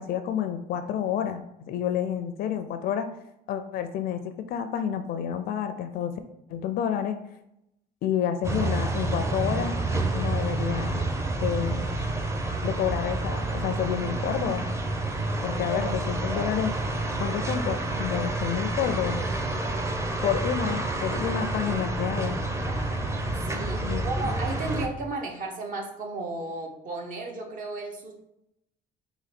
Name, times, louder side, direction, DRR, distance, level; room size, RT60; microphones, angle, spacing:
voice 1, 0.0-3.1 3.5-6.1 6.5-7.2 8.0-9.7 10.1-11.1 11.4-11.9 12.6-14.6 15.4-16.7 17.2-19.2 20.2-22.4 23.9-24.3, left 9 dB, 60° left, 8 dB, 0.4 m, -29 dB
sound 1, 8.4-24.9, right 2 dB, 15° right, 0.6 m, -29 dB
voice 2, 23.5-28.1, right 3 dB, 55° right, 1 dB, 1.0 m, -34 dB
3.9 x 2.9 x 4.2 m, 0.83 s
cardioid pair, 110°, 17 cm